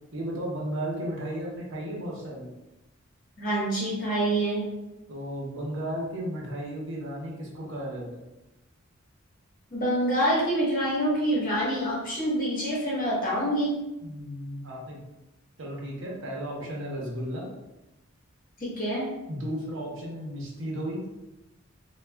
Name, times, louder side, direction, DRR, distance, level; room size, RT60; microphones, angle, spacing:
voice 1, 0.1-2.5 5.1-8.2 14.0-15.0 15.6-17.5 19.3-21.0, equal, 65° right, -3 dB, 0.8 m, -34 dB
voice 2, 3.4-4.7 9.7-13.8 18.6-19.1, right 1 dB, 45° left, -5 dB, 1.0 m, -26 dB
2.3 x 2.2 x 3.3 m, 0.98 s
head